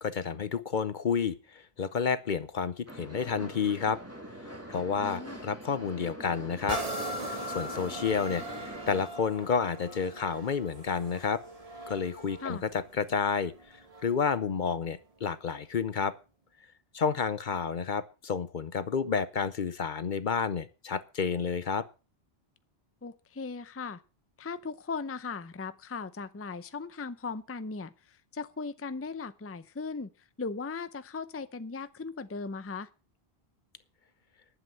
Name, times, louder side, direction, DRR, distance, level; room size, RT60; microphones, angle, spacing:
voice 1, 0.0-4.0 4.7-6.8 7.5-11.4 11.9-13.5 14.0-16.1 16.9-21.9, left 6 dB, 55° left, 15 dB, 0.8 m, -30 dB
sound 1, 2.9-9.1, equal, 15° right, 2.4 m, -44 dB
voice 2, 5.0-5.4 12.4-12.6 23.0-24.0 24.4-30.1 30.4-32.9, left 4 dB, 15° left, 14 dB, 0.6 m, -38 dB
sound 2, 6.7-14.3 14.9-15.0, right 1 dB, 35° right, 1.7 m, -40 dB
11.0 x 7.9 x 7.4 m, 0.34 s
omnidirectional pair, 1.1 m